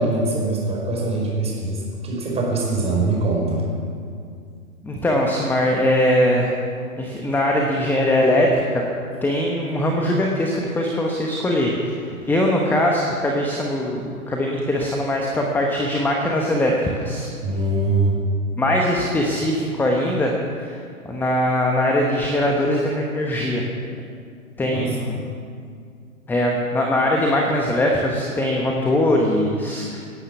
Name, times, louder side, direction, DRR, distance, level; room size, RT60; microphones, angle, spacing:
voice 1, 0.0-3.7 17.4-18.2 24.6-25.0 25.6-25.8, right 2 dB, 15° right, -2 dB, 4.9 m, -23 dB
voice 2, 4.8-6.5 7.0-8.9 9.2-17.3 18.6-23.6 24.6-25.2 26.3-30.0, left 1 dB, 5° left, 0 dB, 1.1 m, -21 dB
18.0 x 10.0 x 7.1 m, 2.3 s
hypercardioid pair, 125°, 44 cm